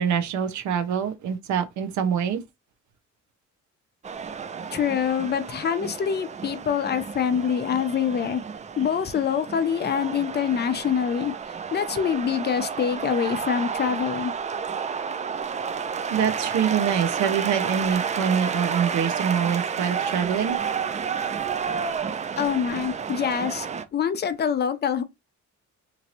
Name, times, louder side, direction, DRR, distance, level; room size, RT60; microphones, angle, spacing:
voice 1, 0.0-2.4 16.1-20.6, right 8 dB, 70° right, 0.7 m, -25 dB
sound 1, 4.0-23.8, right 6 dB, 25° right, 0.3 m, -31 dB
voice 2, 4.7-8.4 8.8-11.3 11.7-14.3 22.4-25.0, left 7 dB, 35° left, 0.5 m, -25 dB
3.1 x 2.6 x 2.7 m
cardioid pair, 90°, 30 cm